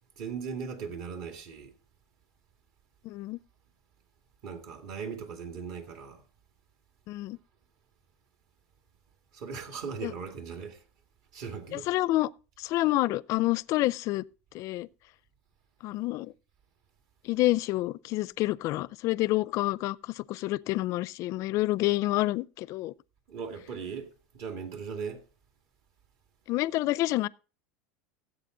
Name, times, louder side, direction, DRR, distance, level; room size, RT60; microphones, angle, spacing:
voice 1, 0.2-1.7 4.4-6.2 9.3-10.8 11.3-11.9 23.3-25.2, right 6 dB, 55° right, 2.3 m, -38 dB
voice 2, 3.0-3.4 7.1-7.4 10.0-10.1 11.7-12.3 12.6-14.2 14.5-14.9 15.8-16.3 17.2-22.9 26.5-27.3, left 17 dB, 50° left, 0.5 m, -28 dB
16.0 x 8.2 x 3.8 m
supercardioid pair, 125°, 7 cm